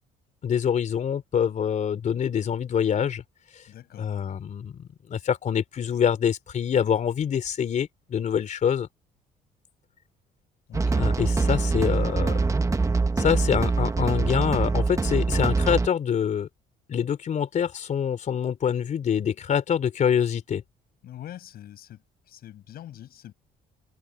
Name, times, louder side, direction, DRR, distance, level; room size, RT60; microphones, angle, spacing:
voice 1, 0.4-3.2 3.5-3.6 4.0-8.9 10.9-12.4 13.2-16.5 16.9-20.6, left 8 dB, 45° left, 3.6 m, -25 dB
voice 2, 3.7-4.1 10.7-11.0 11.3-11.4 21.0-23.3, left 12 dB, 65° left, 6.8 m, -44 dB
sound 1, 10.7-15.9, right 3 dB, 20° right, 1.3 m, -24 dB
cardioid pair, 110°, 17 cm